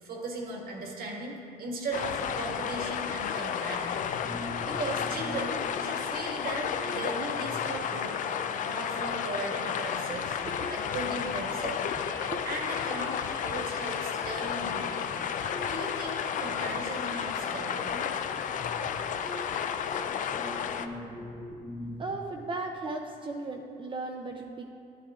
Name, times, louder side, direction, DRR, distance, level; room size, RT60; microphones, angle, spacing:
voice 1, 0.0-4.0 4.7-8.2 8.6-10.4 10.7-11.8 12.4-15.1 15.6-18.1, right 2 dB, 60° right, 0 dB, 1.6 m, -37 dB
sound 1, 1.9-20.9, left 8 dB, 50° left, 0.4 m, -32 dB
sound 2, 4.0-22.2, left 1 dB, 15° left, 0.9 m, -43 dB
voice 2, 22.0-24.7, right 3 dB, 30° right, 2 dB, 0.5 m, -36 dB
11.0 x 9.8 x 2.4 m, 2.5 s
cardioid pair, 110°, 17 cm